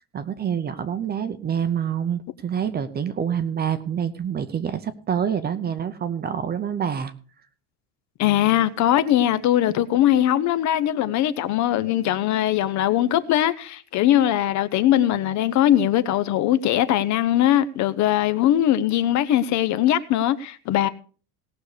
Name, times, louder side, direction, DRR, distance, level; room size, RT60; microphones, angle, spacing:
voice 1, 0.1-7.1, right 8 dB, 20° right, 0.7 m, -27 dB
voice 2, 8.2-20.9, left 12 dB, 40° left, 0.6 m, -21 dB
18.0 x 6.6 x 4.8 m
cardioid pair, 165°, 45 cm